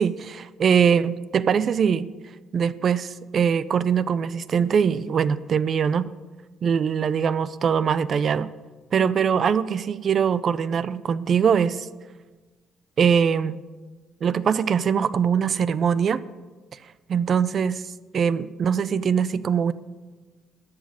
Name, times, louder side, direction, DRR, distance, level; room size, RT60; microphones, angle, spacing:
voice 1, 0.0-2.1 2.5-6.1 6.6-8.5 8.9-11.9 13.0-13.6 14.2-16.2 17.1-17.8 18.1-19.7, right 7 dB, 40° right, 17 dB, 0.5 m, -22 dB
13.5 x 7.3 x 9.0 m, 1.3 s
cardioid pair, 155°, 0 cm